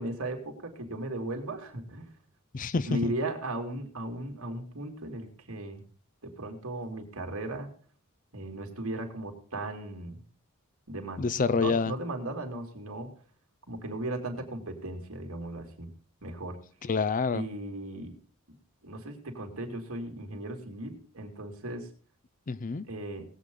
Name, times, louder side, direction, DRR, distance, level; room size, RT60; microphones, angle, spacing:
voice 1, 0.0-2.1 2.9-5.8 6.2-7.7 8.3-10.2 10.9-13.1 13.7-15.9 16.2-16.6 17.3-18.2 18.8-21.9 22.9-23.2, right 1 dB, 80° right, 2 dB, 2.7 m, -36 dB
voice 2, 2.5-3.1 11.2-12.0 16.8-17.4 22.5-22.9, left 4 dB, 40° left, 17 dB, 0.5 m, -27 dB
19.0 x 8.1 x 3.8 m, 0.43 s
head